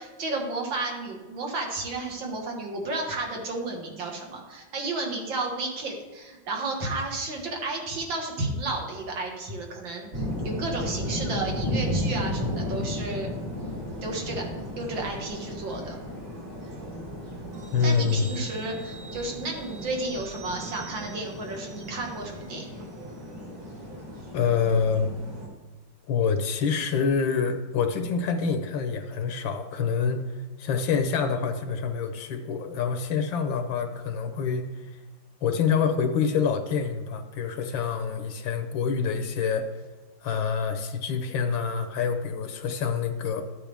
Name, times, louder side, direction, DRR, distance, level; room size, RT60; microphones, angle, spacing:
voice 1, 0.0-13.3 14.0-14.5 14.8-16.0 17.8-22.7, right 2 dB, 80° right, 1 dB, 2.4 m, -32 dB
sound 1, 10.1-25.5, equal, 65° right, 3.5 m, -34 dB
sound 2, 17.5-22.6 23.0-23.1, right 5 dB, 35° right, 0.6 m, -48 dB
voice 2, 17.7-18.2 24.3-25.1 26.1-34.7 35.4-39.7 40.2-43.4, left 6 dB, 85° left, 7 dB, 1.6 m, -26 dB
13.0 x 8.7 x 3.5 m, 1.3 s
omnidirectional pair, 2.0 m